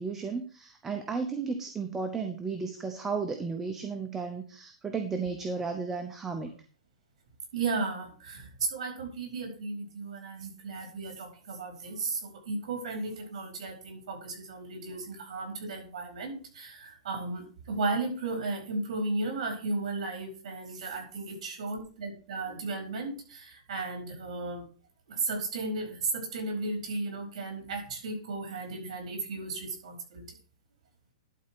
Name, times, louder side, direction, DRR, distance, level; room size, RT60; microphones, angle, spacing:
voice 1, 0.0-6.5, right 4 dB, 10° right, 5 dB, 0.7 m, -34 dB
voice 2, 7.5-24.6 25.1-30.2, right 3 dB, 60° right, 2 dB, 4.6 m, -35 dB
11.5 x 4.3 x 6.0 m, 0.40 s
hypercardioid pair, 165°, 4 cm